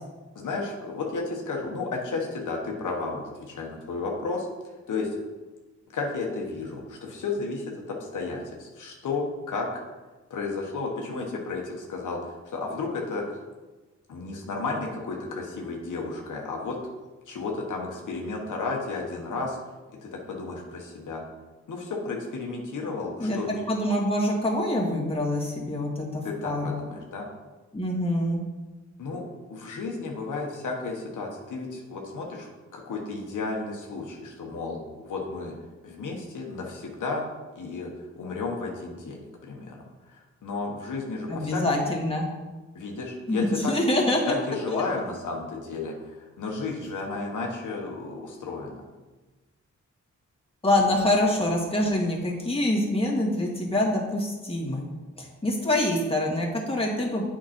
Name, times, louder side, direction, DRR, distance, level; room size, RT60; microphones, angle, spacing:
voice 1, 0.3-4.5 4.9-5.1 5.9-9.8 10.3-13.2 14.1-16.8 17.3-19.6 20.0-21.2 21.7-23.6 26.2-27.3 29.0-29.2 29.5-35.5 35.8-37.3 37.5-39.8 40.1-41.6 42.7-43.7 44.3-48.8, left 3 dB, 90° left, 0 dB, 1.2 m, -33 dB
voice 2, 23.7-26.8 27.7-28.4 41.3-42.3 43.3-44.3 44.7-44.8 50.6-54.9 55.2-57.2, left 1 dB, 20° left, -3 dB, 2.0 m, -25 dB
7.9 x 5.1 x 4.3 m, 1.2 s
cardioid pair, 75°, 30 cm